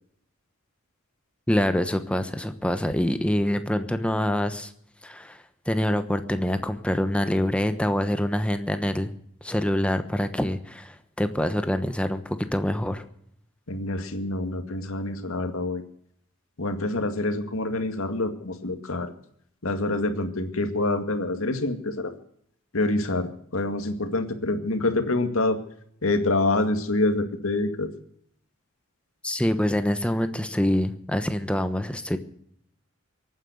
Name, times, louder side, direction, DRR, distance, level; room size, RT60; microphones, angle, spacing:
voice 1, 1.5-4.7 5.0-5.4 5.7-9.1 9.4-13.0 29.2-32.2, left 1 dB, 5° left, 9 dB, 1.1 m, -25 dB
voice 2, 13.7-15.8 16.6-19.1 19.6-22.1 22.7-25.6 26.0-27.9, left 2 dB, 80° left, 7 dB, 2.1 m, -26 dB
23.0 x 9.5 x 6.5 m, 0.67 s
head